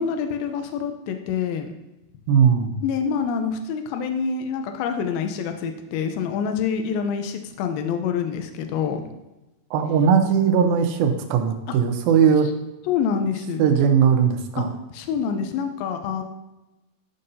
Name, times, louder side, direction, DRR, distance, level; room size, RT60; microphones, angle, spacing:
voice 1, 0.0-1.7 2.8-9.1 12.9-13.6 14.6-14.7 14.9-16.2, left 6 dB, 85° left, 6 dB, 2.4 m, -26 dB
voice 2, 2.3-2.8 9.7-12.5 13.6-14.7, right 7 dB, 90° right, 5 dB, 2.5 m, -19 dB
11.0 x 5.5 x 2.6 m, 1.0 s
omnidirectional pair, 4.2 m